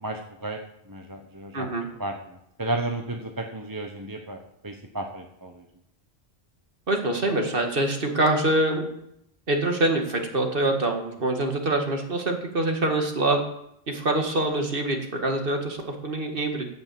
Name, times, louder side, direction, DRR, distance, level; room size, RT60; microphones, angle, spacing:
voice 1, 0.0-0.6 0.9-1.7 2.0-5.6, right 2 dB, 20° right, 3 dB, 0.9 m, -33 dB
voice 2, 1.5-1.9 6.9-8.9 9.5-13.4 13.9-16.7, right 2 dB, 60° right, 3 dB, 2.1 m, -25 dB
15.5 x 5.8 x 7.6 m, 0.77 s
omnidirectional pair, 1.1 m